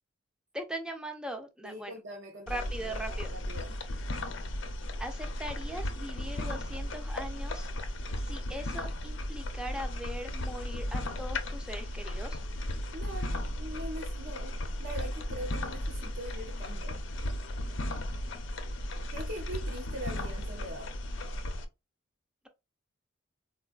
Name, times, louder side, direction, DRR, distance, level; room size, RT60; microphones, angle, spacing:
voice 1, 0.5-2.0 2.5-3.3 5.0-7.7 8.2-12.4, right 1 dB, 5° right, 0.5 m, -40 dB
voice 2, 1.6-3.8 12.9-14.5 14.8-17.0 19.1-20.9, equal, 65° right, 0.7 m, -42 dB
sound 1, 2.5-21.6, left 1 dB, 70° left, 0.6 m, -35 dB
4.2 x 2.3 x 2.3 m
head